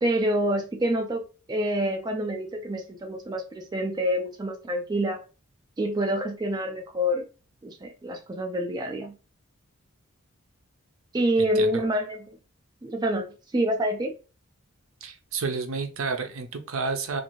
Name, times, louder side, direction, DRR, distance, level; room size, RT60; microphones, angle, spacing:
voice 1, 0.0-1.2 1.5-5.2 5.8-7.2 7.6-9.1 11.1-12.4 12.8-14.1, equal, 20° right, 3 dB, 0.3 m, -27 dB
voice 2, 11.4-11.8 15.0-17.2, right 4 dB, 70° right, 6 dB, 0.6 m, -31 dB
2.5 x 2.5 x 3.0 m, 0.33 s
head